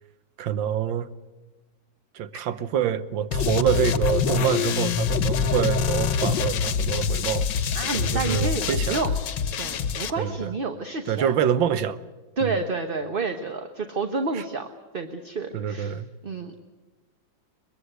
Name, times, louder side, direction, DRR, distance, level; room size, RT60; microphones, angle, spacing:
voice 1, 0.4-1.1 2.1-7.5 7.9-9.0 10.2-10.5 11.1-12.0 12.4-12.6 14.3-14.4 15.5-16.1, right 9 dB, 90° right, 14 dB, 1.7 m, -26 dB
sound 1, 3.3-10.1, left 7 dB, 75° left, 1.6 m, -25 dB
voice 2, 7.7-9.1 9.6-11.3 12.4-14.7 14.9-16.0 16.2-16.6, right 3 dB, 35° right, 6 dB, 1.1 m, -29 dB
22.5 x 21.0 x 8.0 m, 1.1 s
omnidirectional pair, 2.0 m